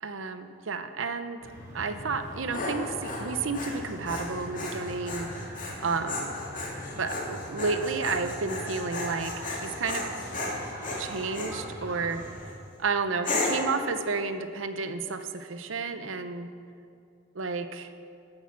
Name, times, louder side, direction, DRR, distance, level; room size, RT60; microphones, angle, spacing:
voice 1, 0.0-1.5 1.7-6.3 7.0-10.1 11.0-12.2 12.8-16.5 17.3-17.9, right 4 dB, 90° right, 10 dB, 0.8 m, -31 dB
sound 1, 1.4-12.4, equal, 15° right, 2.2 m, -43 dB
Dog, 2.1-11.6 12.1-12.5 13.2-13.7, left 2 dB, 40° left, 2.2 m, -34 dB
13.5 x 8.9 x 5.9 m, 2.3 s
head